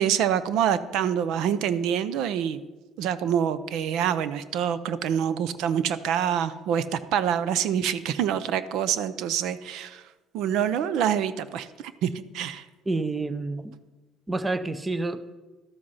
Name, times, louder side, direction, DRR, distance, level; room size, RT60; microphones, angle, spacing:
voice 1, 0.0-2.6 3.0-10.0 10.3-12.6, right 9 dB, 75° right, 15 dB, 0.6 m, -26 dB
voice 2, 12.9-13.7 14.3-15.3, right 2 dB, 15° right, 13 dB, 0.6 m, -29 dB
12.5 x 7.8 x 5.6 m, 1.2 s
cardioid pair, 135°, 0 cm